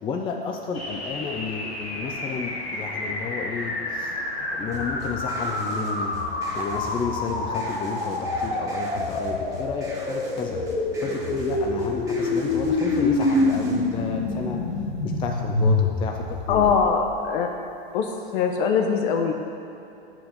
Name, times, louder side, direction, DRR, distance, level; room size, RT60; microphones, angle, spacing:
voice 1, 0.0-4.1 4.5-6.1 6.5-10.6 11.0-14.6 15.0-16.8, left 5 dB, 15° left, 2 dB, 0.4 m, -32 dB
sound 1, 0.7-17.0, left 2 dB, 80° left, 1.7 m, -27 dB
sound 2, 4.7-13.8, left 2 dB, 10° right, 1.3 m, -40 dB
voice 2, 16.5-17.5 17.9-18.1 18.3-19.3, left 6 dB, 55° left, 3 dB, 1.0 m, -22 dB
7.2 x 4.9 x 5.3 m, 2.8 s
hypercardioid pair, 105°, 31 cm